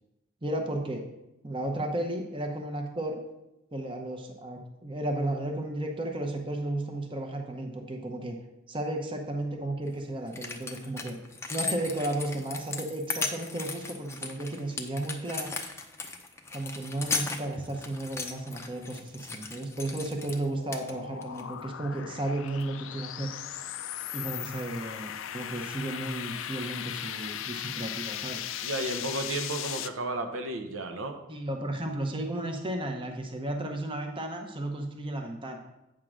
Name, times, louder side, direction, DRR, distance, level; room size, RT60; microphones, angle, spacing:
voice 1, 0.4-1.1 1.4-3.2 3.7-8.4 8.7-11.2 11.5-15.5 16.5-23.3 24.1-28.5 31.3-35.6, right 1 dB, 25° right, 3 dB, 0.8 m, -34 dB
sound 1, 9.9-10.0 10.3-20.4 20.7-21.4 22.5-22.6, left 4 dB, 15° left, 0.6 m, -37 dB
sound 2, 19.6-29.9, left 10 dB, 75° left, 0.4 m, -38 dB
voice 2, 28.6-31.2, right 2 dB, 80° right, 5 dB, 0.9 m, -33 dB
8.8 x 3.7 x 6.2 m, 0.94 s
head